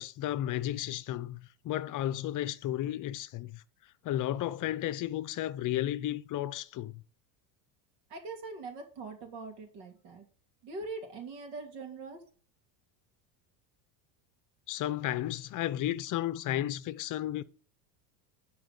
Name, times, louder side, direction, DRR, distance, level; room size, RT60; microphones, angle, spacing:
voice 1, 0.0-3.6 4.0-7.0 14.7-17.4, left 13 dB, 40° left, 0.7 m, -33 dB
voice 2, 8.1-10.3 10.6-12.2, right 3 dB, 70° right, 3.0 m, -42 dB
11.5 x 4.8 x 5.4 m
supercardioid pair, 120°, 49 cm